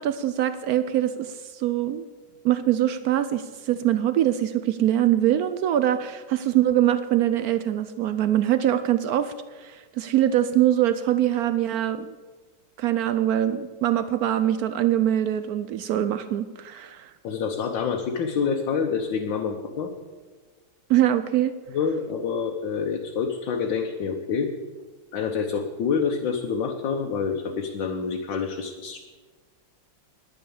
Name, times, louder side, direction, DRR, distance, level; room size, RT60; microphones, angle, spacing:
voice 1, 0.0-2.1 2.4-9.3 9.6-12.2 12.8-17.1 20.9-21.5, right 12 dB, 80° right, 12 dB, 0.8 m, -23 dB
voice 2, 17.2-19.9 21.7-24.5 25.1-29.0, left 6 dB, 70° left, 2 dB, 1.6 m, -27 dB
10.5 x 10.0 x 7.0 m, 1.4 s
omnidirectional pair, 2.2 m